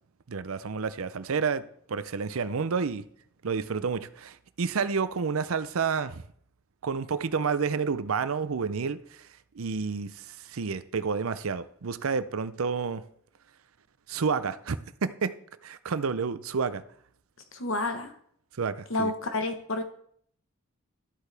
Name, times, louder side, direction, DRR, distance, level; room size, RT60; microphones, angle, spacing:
voice 1, 0.3-1.6 1.9-3.1 3.4-6.2 6.8-9.3 9.5-13.0 14.1-15.3 15.6-16.8 18.6-19.1, right 5 dB, 85° right, 0.6 m, -30 dB
voice 2, 17.5-18.1 18.9-19.8, left 2 dB, 65° left, 1.2 m, -29 dB
12.5 x 8.2 x 3.4 m
head